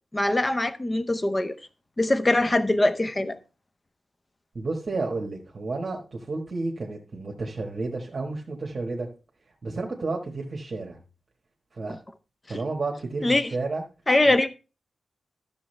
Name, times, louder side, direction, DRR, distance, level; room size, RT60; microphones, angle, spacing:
voice 1, 0.1-1.6 2.0-3.4 13.2-13.5 14.1-14.5, left 2 dB, 20° left, 0.6 m, -22 dB
voice 2, 4.5-9.1 9.6-11.0 11.7-12.0 12.5-13.8 14.3-14.4, right 3 dB, 35° right, 1.4 m, -31 dB
12.5 x 6.9 x 3.3 m
wide cardioid pair, 150°, 0 cm